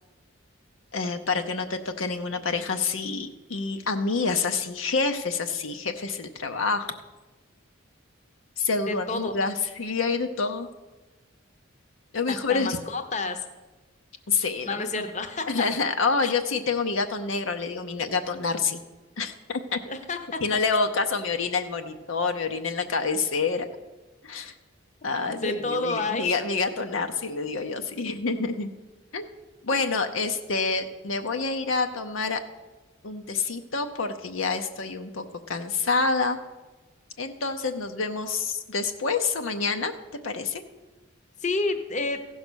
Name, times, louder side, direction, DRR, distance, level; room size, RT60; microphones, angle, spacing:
voice 1, 0.9-6.9 8.6-10.7 12.1-12.8 14.3-15.1 15.5-18.8 19.2-19.8 20.4-23.7 24.2-24.5 25.0-28.7 29.1-29.3 29.6-32.4 33.0-36.4 37.2-39.9 40.2-40.6, left 4 dB, 70° left, 6 dB, 0.7 m, -27 dB
voice 2, 8.9-9.3 12.3-13.4 14.6-15.7 16.2-16.3 19.9-20.4 25.4-26.4 41.4-42.2, left 3 dB, 35° left, 8 dB, 0.8 m, -29 dB
15.5 x 5.5 x 6.2 m, 1.2 s
head